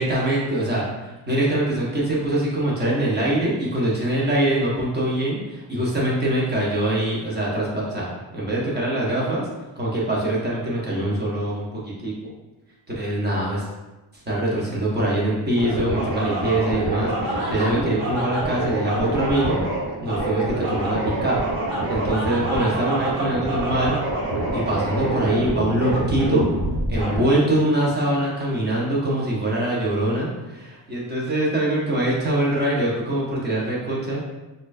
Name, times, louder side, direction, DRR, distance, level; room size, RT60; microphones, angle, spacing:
voice 1, 0.0-9.4 9.8-12.1 13.0-13.6 14.3-19.6 20.0-21.4 21.9-24.0 24.5-26.4 26.9-34.2, right 1 dB, 20° right, -5 dB, 0.8 m, -23 dB
sound 1, 15.6-27.2, right 1 dB, 75° right, 1.4 m, -26 dB
4.2 x 2.5 x 2.5 m, 1.1 s
wide cardioid pair, 165°, 49 cm